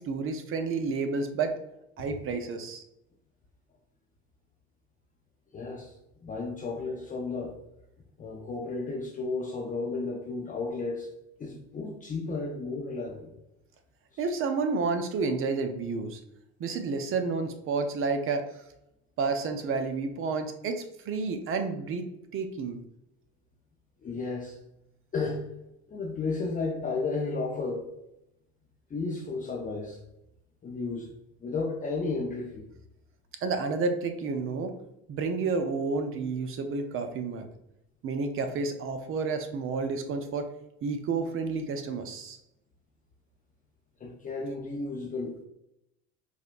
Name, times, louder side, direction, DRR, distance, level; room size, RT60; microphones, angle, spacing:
voice 1, 0.0-1.5 2.0-2.8 14.2-16.2 16.6-18.5 19.2-22.8 33.4-34.7 35.1-37.5 38.0-40.5 40.8-42.4, right 4 dB, 40° right, 7 dB, 0.5 m, -30 dB
voice 2, 5.5-5.9 6.2-7.6 8.2-11.1 11.4-13.3 24.0-24.6 25.1-25.5 25.9-27.9 28.9-30.0 30.6-31.1 31.4-32.7 44.0-45.4, left 3 dB, 25° left, 0 dB, 0.5 m, -33 dB
4.8 x 2.2 x 2.4 m, 0.85 s
hypercardioid pair, 75°, 33 cm